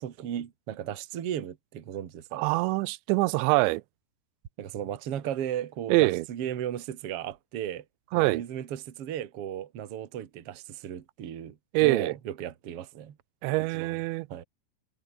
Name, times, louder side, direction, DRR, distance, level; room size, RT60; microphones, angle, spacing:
voice 1, 0.0-2.5 4.6-7.8 8.1-13.2 13.7-14.0 14.3-14.4, right 10 dB, 50° right, 1.9 m, -35 dB
voice 2, 2.3-3.8 5.9-6.2 8.1-8.4 11.7-12.1 13.4-14.3, right 21 dB, 90° right, 3.0 m, -24 dB
omnidirectional pair, 5.1 m